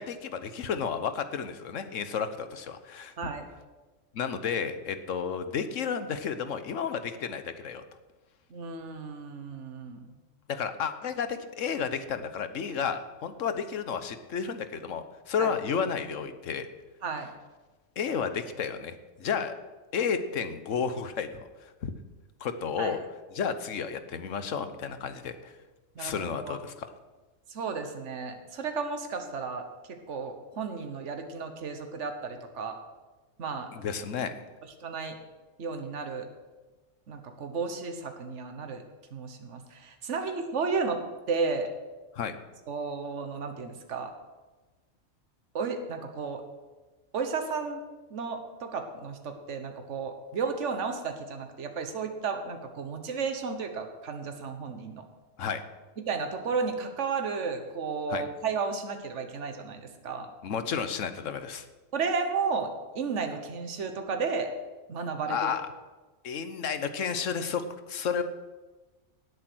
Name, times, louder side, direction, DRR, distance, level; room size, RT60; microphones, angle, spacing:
voice 1, 0.0-3.3 4.1-7.8 10.5-16.7 18.0-19.5 19.9-21.4 21.8-21.9 22.4-23.0 23.3-25.5 26.0-26.7 33.7-34.3 42.1-42.3 55.4-55.6 58.1-58.2 60.4-61.7 65.3-65.7 66.2-68.2, left 6 dB, 80° left, 10 dB, 1.3 m, -32 dB
voice 2, 3.2-3.5 8.5-10.1 15.4-15.5 17.0-17.3 22.8-23.0 25.9-26.6 27.5-32.8 33.4-33.7 34.8-35.2 35.6-36.3 37.1-38.8 39.1-41.0 41.3-41.7 42.7-44.1 45.5-46.4 47.1-47.8 48.1-55.0 56.0-60.3 61.9-62.7 62.9-64.5 64.9-65.5, right 5 dB, 70° right, 6 dB, 1.5 m, -33 dB
18.0 x 8.3 x 6.2 m, 1.2 s
omnidirectional pair, 1.3 m